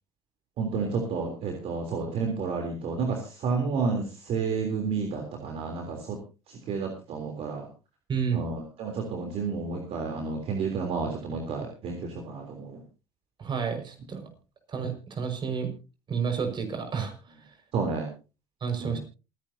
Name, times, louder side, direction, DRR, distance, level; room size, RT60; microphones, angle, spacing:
voice 1, 0.6-6.2 6.7-7.7 8.3-12.8 17.7-18.1 18.8-19.0, right 4 dB, 55° right, 2 dB, 3.5 m, -31 dB
voice 2, 8.1-8.4 13.4-14.3 14.7-15.7 16.1-17.1 18.6-19.0, right 6 dB, 40° right, 6 dB, 5.6 m, -30 dB
27.5 x 10.5 x 2.8 m, 0.33 s
supercardioid pair, 80°, 12 cm